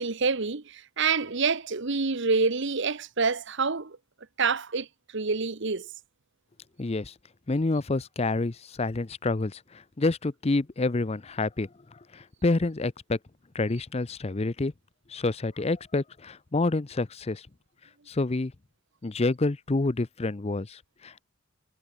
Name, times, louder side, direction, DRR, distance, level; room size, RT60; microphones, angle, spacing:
voice 1, 0.0-4.0 4.4-4.9 5.1-5.9, right 4 dB, 60° right, 1.1 m, -27 dB
voice 2, 6.8-7.1 7.5-11.7 12.1-13.2 13.5-14.7 15.1-17.4 18.1-18.5 19.0-21.2, left 2 dB, 30° left, 0.6 m, -28 dB
head